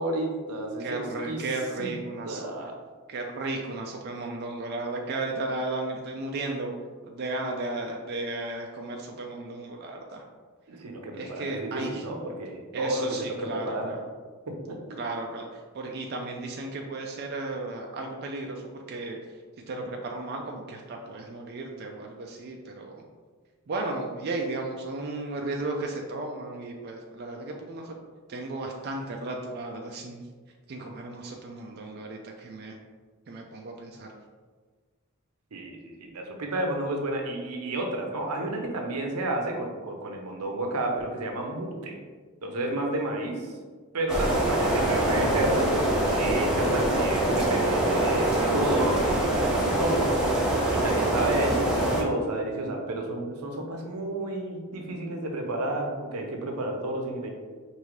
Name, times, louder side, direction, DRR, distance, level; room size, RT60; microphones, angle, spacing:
voice 1, 0.0-1.5 1.8-1.9 2.2-2.7 10.7-13.9 14.5-15.0 35.5-42.0 42.4-43.5 43.9-45.7 46.0-50.1 50.7-57.3, right 1 dB, 85° right, 2 dB, 0.7 m, -31 dB
voice 2, 0.8-2.7 3.1-6.7 7.1-10.2 11.2-12.0 12.7-14.0 15.0-19.2 19.7-23.0 23.7-27.9 28.3-30.2 30.7-32.8 33.3-34.1, right 2 dB, 45° right, 1 dB, 0.4 m, -34 dB
sound 1, 44.1-52.0, right 1 dB, 5° right, 0.6 m, -24 dB
4.9 x 2.7 x 3.1 m, 1.5 s
head